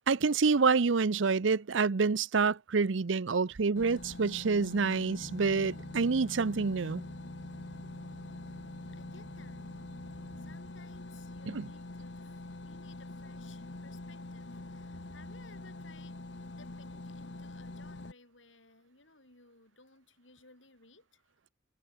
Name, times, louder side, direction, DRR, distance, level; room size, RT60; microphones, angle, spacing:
voice 1, 0.1-7.0 11.5-11.7, right 4 dB, 80° right, 0.7 m, -27 dB
sound 1, 3.8-18.1, left 2 dB, 65° left, 1.2 m, -45 dB
sound 2, 5.2-10.6, equal, 10° right, 3.8 m, -50 dB
voice 2, 8.9-9.7 10.4-21.3, left 3 dB, 85° left, 7.4 m, -60 dB
head